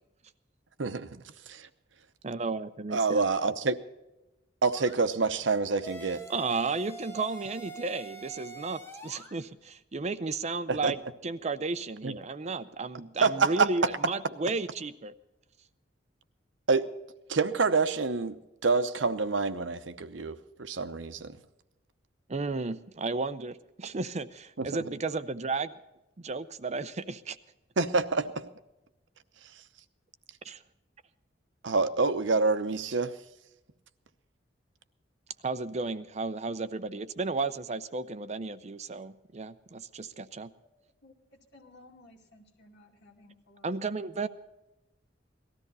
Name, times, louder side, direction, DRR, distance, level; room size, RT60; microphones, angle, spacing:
voice 1, 0.8-1.7 2.9-3.8 4.6-6.2 10.7-10.9 12.0-12.2 13.2-13.7 16.7-16.9 17.3-21.4 24.6-24.7 27.8-28.4 31.6-33.1, right 4 dB, 80° right, 11 dB, 0.8 m, -27 dB
voice 2, 2.2-3.2 6.3-15.1 22.3-25.7 26.2-27.4 30.4-30.6 35.4-40.5 43.6-44.3, right 3 dB, 40° right, 13 dB, 0.6 m, -33 dB
sound 1, 4.7-5.0 5.8-9.3, right 3 dB, 15° left, 1.9 m, -44 dB
voice 3, 41.0-44.3, left 2 dB, 65° left, 1 dB, 2.5 m, -57 dB
18.5 x 13.5 x 4.1 m, 0.97 s
head